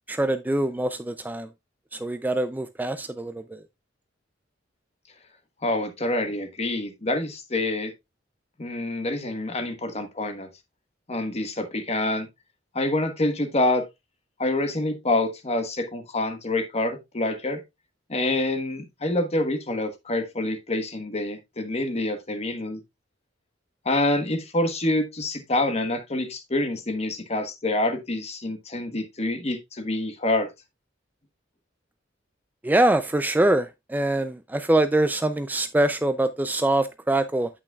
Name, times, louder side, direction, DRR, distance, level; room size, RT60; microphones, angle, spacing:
voice 1, 0.1-1.5 1.9-3.6 32.6-37.5, right 1 dB, 10° right, 0.3 m, -24 dB
voice 2, 5.6-7.9 8.6-10.5 11.1-12.3 12.7-13.9 14.4-17.6 18.1-22.8 23.8-30.5, left 2 dB, 35° left, 1.2 m, -26 dB
8.8 x 8.4 x 2.3 m
head